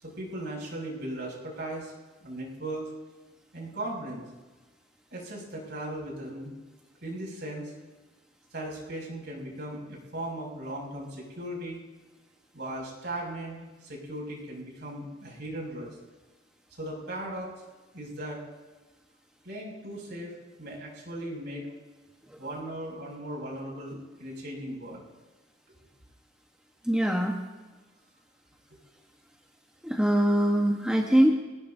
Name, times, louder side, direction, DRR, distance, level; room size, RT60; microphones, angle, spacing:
voice 1, 0.0-1.9 2.2-2.9 3.5-4.2 5.1-6.5 7.0-7.7 8.5-11.8 12.5-15.9 16.8-17.5 17.9-18.4 19.4-21.7 22.4-25.0, right 1 dB, 60° right, -2 dB, 6.5 m, -37 dB
voice 2, 26.9-27.4 29.8-31.3, right 1 dB, 5° right, 0 dB, 1.2 m, -22 dB
26.5 x 18.5 x 2.7 m, 1.3 s
head